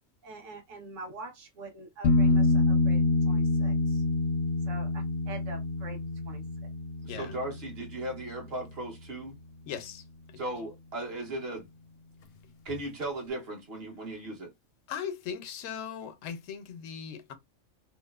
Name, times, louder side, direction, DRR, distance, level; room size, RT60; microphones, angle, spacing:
voice 1, 0.2-4.0 4.6-6.4, right 3 dB, 80° right, 1.3 m, -45 dB
sound 1, 2.0-9.7 12.7-12.8, left 3 dB, 65° left, 0.7 m, -27 dB
voice 2, 7.0-9.3 10.4-11.7 12.6-14.5, right 1 dB, 55° right, 1.1 m, -37 dB
voice 3, 9.7-10.0 10.3-10.5 14.9-17.3, left 8 dB, 90° left, 1.0 m, -38 dB
3.0 x 2.0 x 2.2 m
omnidirectional pair, 1.3 m